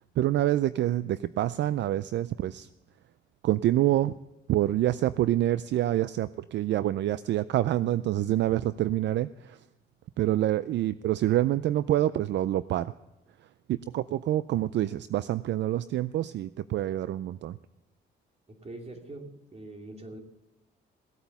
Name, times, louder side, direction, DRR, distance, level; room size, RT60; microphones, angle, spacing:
voice 1, 0.2-2.7 3.4-4.1 4.5-9.6 10.2-12.9 13.7-17.6, right 13 dB, 65° right, 16 dB, 0.4 m, -27 dB
voice 2, 18.5-20.2, right 2 dB, 30° right, 3 dB, 2.8 m, -43 dB
17.0 x 8.8 x 7.0 m, 0.96 s
cardioid pair, 90°, 20 cm